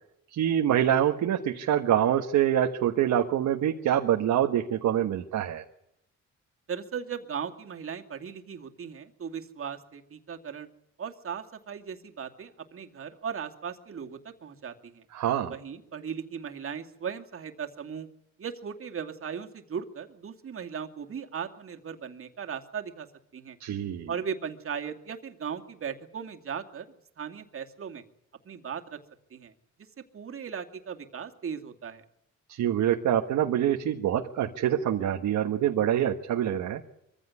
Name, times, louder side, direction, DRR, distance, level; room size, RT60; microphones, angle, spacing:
voice 1, 0.3-5.6 15.1-15.5 23.6-24.1 32.5-36.8, right 10 dB, 75° right, 4 dB, 1.5 m, -25 dB
voice 2, 6.7-10.7 11.0-15.0 15.5-18.1 18.4-23.1 23.3-23.6 24.1-26.9 27.2-28.0 28.4-29.0 29.3-29.5 30.1-32.0, right 7 dB, 45° right, 4 dB, 2.4 m, -37 dB
23.5 x 15.5 x 9.7 m, 0.82 s
cardioid pair, 90°, 30 cm